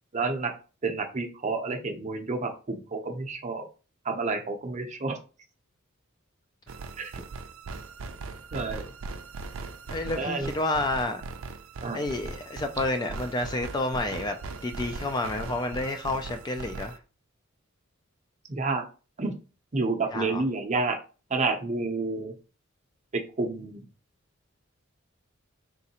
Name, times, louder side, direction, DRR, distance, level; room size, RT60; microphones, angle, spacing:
voice 1, 0.1-0.5 0.8-3.7 4.0-5.2 7.0-7.1 8.5-8.9 10.2-10.5 11.8-12.0 18.5-18.8 19.2-19.3 19.7-21.0 21.3-22.3 23.1-23.8, right 3 dB, 35° right, 0.6 m, -29 dB
sound 1, 6.7-17.0, right 3 dB, 85° right, 0.5 m, -39 dB
voice 2, 9.9-11.2 11.9-14.4 14.6-17.0 20.1-20.4, left 2 dB, 20° left, 0.3 m, -30 dB
3.7 x 3.1 x 2.9 m
head